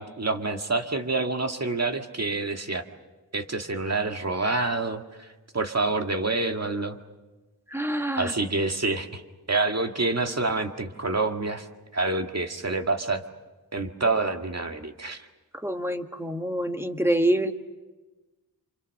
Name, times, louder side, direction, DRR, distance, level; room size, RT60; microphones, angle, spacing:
voice 1, 0.0-2.8 3.3-5.3 5.5-7.0 8.2-9.2 9.5-11.7 11.9-13.2 13.7-15.3, right 3 dB, 40° right, 4 dB, 2.0 m, -27 dB
voice 2, 7.7-8.3 15.6-17.5, right 1 dB, 5° right, 5 dB, 1.7 m, -26 dB
29.0 x 26.5 x 6.6 m, 1.2 s
wide cardioid pair, 80°, 38 cm